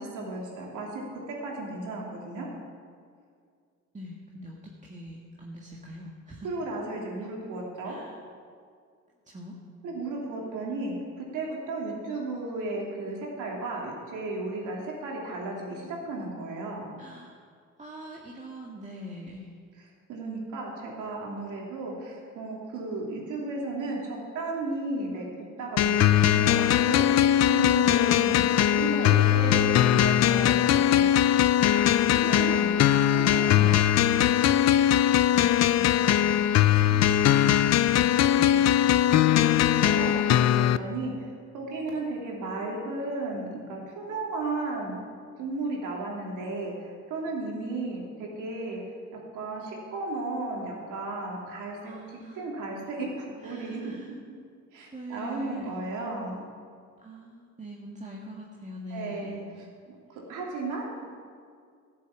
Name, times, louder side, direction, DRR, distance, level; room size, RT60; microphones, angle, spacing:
voice 1, 0.0-2.5 6.4-8.0 9.8-16.9 20.1-25.3 25.6-27.1 27.5-30.6 30.9-31.2 31.7-33.8 34.1-34.2 39.4-39.5 39.8-45.0 45.4-48.8 49.3-51.8 52.1-53.9 54.7-56.4 58.9-59.4 60.1-61.0, right 2 dB, 90° right, -2 dB, 3.0 m, -34 dB
voice 2, 3.9-6.5 7.8-8.2 9.2-9.5 17.0-17.5 17.8-19.5 35.4-39.0 51.8-52.4 53.4-54.1 54.9-55.7 57.0-59.4, equal, 25° right, -2 dB, 1.7 m, -43 dB
sound 1, 25.8-40.8, left 11 dB, 60° left, 0.5 m, -21 dB
13.5 x 7.4 x 8.3 m, 2.2 s
cardioid pair, 90°, 30 cm